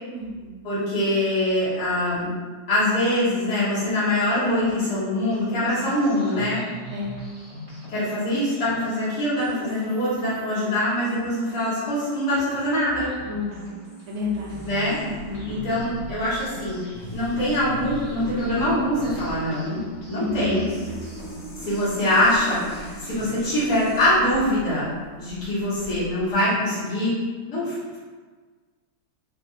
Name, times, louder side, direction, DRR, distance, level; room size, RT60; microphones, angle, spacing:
voice 1, 0.1-0.5 6.9-7.1 13.2-13.7 14.1-14.6 15.0-15.5 20.1-20.6, left 3 dB, 75° right, -3 dB, 1.2 m, -31 dB
voice 2, 0.6-2.3 2.7-6.6 7.9-13.1 14.7-15.0 15.5-16.8 17.1-19.8 20.1-20.7 21.6-24.9 25.1-27.1 27.5-28.0, left 1 dB, 75° left, -12 dB, 2.1 m, -23 dB
sound 1, 5.3-24.2, right 2 dB, 25° left, 0.8 m, -42 dB
sound 2, 14.5-26.3, left 2 dB, 60° left, 1.1 m, -40 dB
4.2 x 2.3 x 2.7 m, 1.5 s
omnidirectional pair, 1.7 m